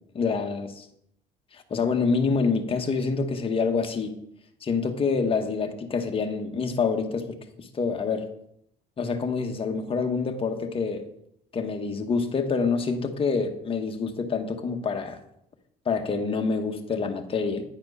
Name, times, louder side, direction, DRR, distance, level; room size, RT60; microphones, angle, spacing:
voice 1, 0.1-0.9 1.5-4.2 4.6-8.3 9.0-11.0 11.5-15.2 15.8-17.6, left 4 dB, 35° left, 5 dB, 1.1 m, -27 dB
9.8 x 4.4 x 5.3 m, 0.75 s
cardioid pair, 110°, 17 cm